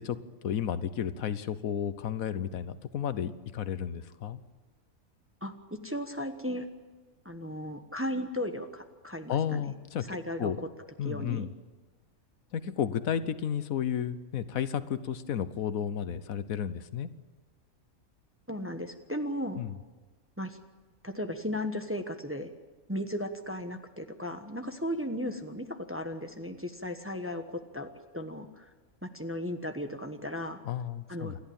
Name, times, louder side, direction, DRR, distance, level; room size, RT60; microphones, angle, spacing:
voice 1, 0.0-4.4 9.3-10.0 10.4-10.6 11.0-11.5 12.5-17.1 19.5-19.8 30.6-31.4, left 9 dB, 80° left, 13 dB, 1.3 m, -32 dB
voice 2, 5.4-6.7 7.2-9.7 10.1-10.5 11.0-11.5 18.5-19.6 20.4-20.6 21.0-22.5 22.9-28.7 29.0-30.6 31.1-31.4, equal, 10° right, 6 dB, 1.0 m, -36 dB
27.5 x 12.0 x 8.8 m, 1.3 s
omnidirectional pair, 1.4 m